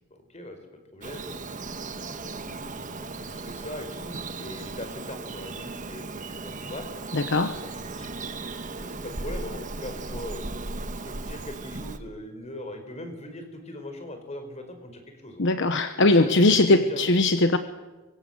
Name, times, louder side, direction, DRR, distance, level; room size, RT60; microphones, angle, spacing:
voice 1, 0.1-0.6 0.9-1.4 2.0-6.8 7.6-8.4 8.7-15.4 16.1-17.0, left 1 dB, 35° left, 6 dB, 4.6 m, -40 dB
Bird vocalization bird call bird song, 1.0-12.0, right 3 dB, 40° right, 1.3 m, -36 dB
voice 2, 7.1-7.6 15.4-17.6, left 2 dB, 60° left, 9 dB, 1.0 m, -20 dB
24.5 x 23.5 x 8.0 m, 1.2 s
head